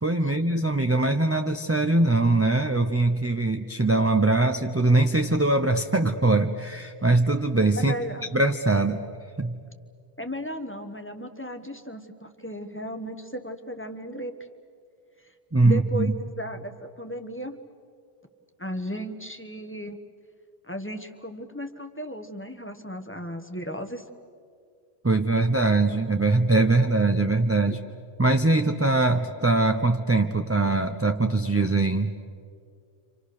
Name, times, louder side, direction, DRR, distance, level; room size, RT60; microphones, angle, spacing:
voice 1, 0.0-7.9 8.3-9.0 9.4-9.6 15.5-16.1 25.0-27.8 28.2-32.1, right 2 dB, 15° right, 6 dB, 0.6 m, -22 dB
voice 2, 7.8-8.3 10.2-14.3 15.6-17.6 18.6-20.0 20.7-24.0 27.7-27.8, equal, 10° left, 6 dB, 1.2 m, -35 dB
29.5 x 26.0 x 6.6 m, 2.3 s
omnidirectional pair, 1.2 m